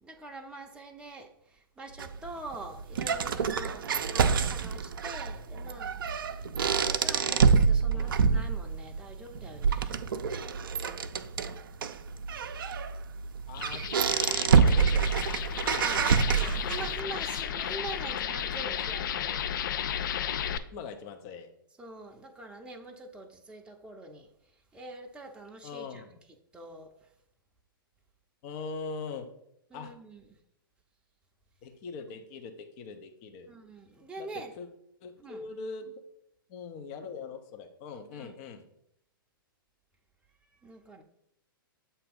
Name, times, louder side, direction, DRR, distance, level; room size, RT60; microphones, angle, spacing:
voice 1, 0.0-6.0 6.7-10.0 15.6-19.5 21.8-24.3 24.7-26.2 26.5-27.1 29.7-30.4 33.5-34.6 35.2-35.5 38.1-38.4 40.6-41.0, right 2 dB, 10° right, 0.7 m, -44 dB
sound 1, 2.0-17.0, right 6 dB, 70° right, 0.4 m, -27 dB
voice 2, 7.9-8.2 13.5-13.8 14.1-15.5 15.9-16.9 17.7-17.8 20.7-21.5 25.6-26.1 28.4-29.3 29.7-29.9 31.6-33.5 34.2-34.7 35.0-36.0 36.5-38.6, left 4 dB, 40° left, 0.8 m, -42 dB
sound 2, 13.5-20.6, left 9 dB, 60° left, 0.4 m, -34 dB
7.5 x 2.8 x 5.3 m
figure-of-eight pair, 110°, 12 cm